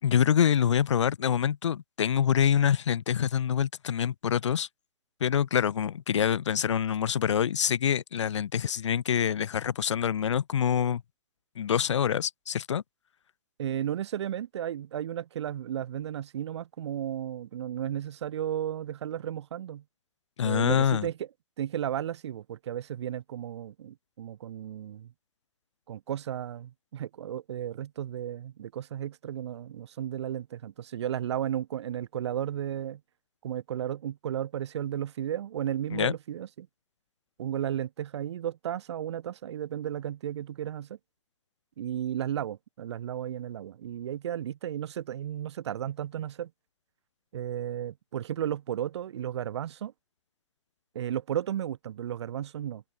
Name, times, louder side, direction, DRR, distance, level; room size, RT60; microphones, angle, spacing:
voice 1, 0.0-4.7 5.2-11.0 11.6-12.8 20.4-21.1 35.9-36.1, left 8 dB, 70° left, 4.3 m, -26 dB
voice 2, 13.6-19.8 20.4-21.1 21.6-25.1 25.9-33.0 33.4-36.7 37.4-41.0 41.8-46.5 47.3-49.9 50.9-52.8, right 10 dB, 65° right, 6.3 m, -34 dB
hypercardioid pair, 140°, 15 cm